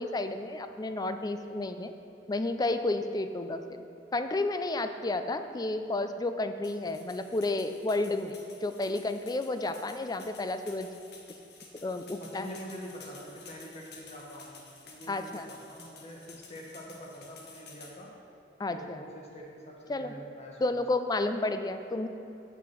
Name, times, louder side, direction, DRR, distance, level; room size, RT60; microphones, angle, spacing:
voice 1, 0.0-1.9 2.3-3.8 4.1-8.3 8.6-10.9 11.8-12.5 15.1-15.5 18.6-19.0 19.9-20.1 20.6-22.1, left 2 dB, 20° left, 9 dB, 0.4 m, -31 dB
sound 1, 6.6-17.9, left 4 dB, 65° left, 1.3 m, -52 dB
voice 2, 12.2-18.1 18.7-20.8, equal, 40° left, -2 dB, 1.6 m, -45 dB
8.9 x 6.0 x 6.0 m, 2.8 s
head